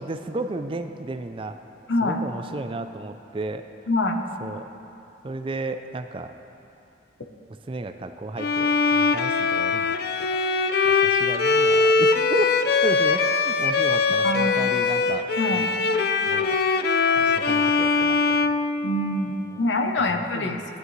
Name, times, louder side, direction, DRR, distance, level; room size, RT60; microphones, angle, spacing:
voice 1, 0.0-1.6 2.0-3.6 4.4-4.7 5.2-6.3 7.5-10.0 10.8-15.8 16.3-16.6 17.2-18.5 20.1-20.7, right 2 dB, 30° right, 8 dB, 0.4 m, -33 dB
voice 2, 1.9-2.2 3.9-4.2 14.2-14.6 15.4-15.6 18.8-20.6, left 2 dB, 75° left, 5 dB, 0.8 m, -24 dB
Bowed string instrument, 8.4-19.4, left 4 dB, 55° left, 0.4 m, -22 dB
15.5 x 10.5 x 3.2 m, 2.8 s
head